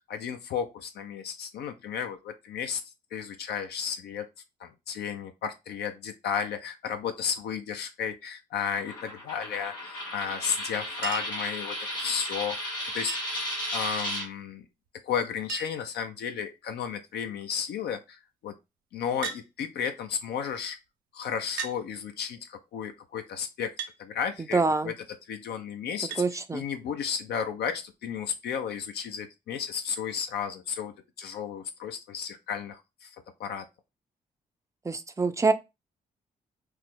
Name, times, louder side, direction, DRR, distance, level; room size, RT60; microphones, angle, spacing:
voice 1, 0.1-2.8 3.1-4.2 4.6-13.2 13.7-14.6 15.0-18.5 18.9-20.8 21.1-23.7 24.0-24.9 25.3-26.2 26.5-30.9 31.2-33.1 33.4-33.7, left 7 dB, 65° left, 0.4 m, -33 dB
Coin (dropping), 8.7-14.3, equal, 90° left, 1.3 m, -34 dB
Chink clink, 11.0-11.5 13.1-13.5 14.9-15.0 15.2-15.3 15.5-15.9 16.7-17.1 19.2-19.5 20.5-20.6 21.6-21.8 23.8-24.0 26.1-26.3 27.7-27.8, right 5 dB, 90° right, 0.4 m, -36 dB
voice 2, 24.5-24.9 26.2-26.6 34.8-35.5, right 3 dB, 15° right, 0.4 m, -25 dB
3.0 x 2.0 x 3.5 m
hypercardioid pair, 40°, 19 cm